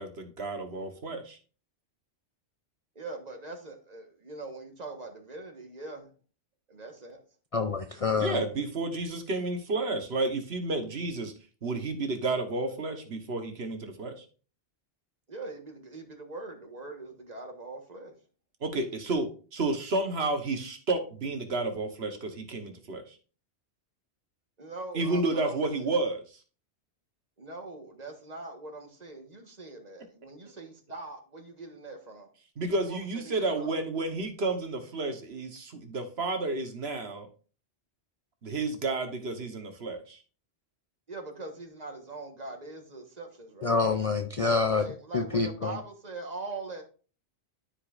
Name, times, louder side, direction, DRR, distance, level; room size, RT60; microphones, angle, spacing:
voice 1, 0.0-1.4 8.2-11.3 11.6-14.2 18.6-23.1 24.9-26.2 32.6-37.3 38.4-40.2, right 2 dB, 65° right, 6 dB, 1.4 m, -31 dB
voice 2, 2.9-6.1 6.7-7.2 15.3-18.1 24.6-25.6 27.4-32.3 32.9-33.7 41.1-43.7 44.4-46.8, right 2 dB, 35° right, 4 dB, 1.5 m, -42 dB
voice 3, 7.5-8.4 43.6-44.8 45.1-45.7, left 4 dB, 45° left, 7 dB, 0.5 m, -27 dB
13.0 x 5.0 x 2.5 m, 0.37 s
omnidirectional pair, 1.2 m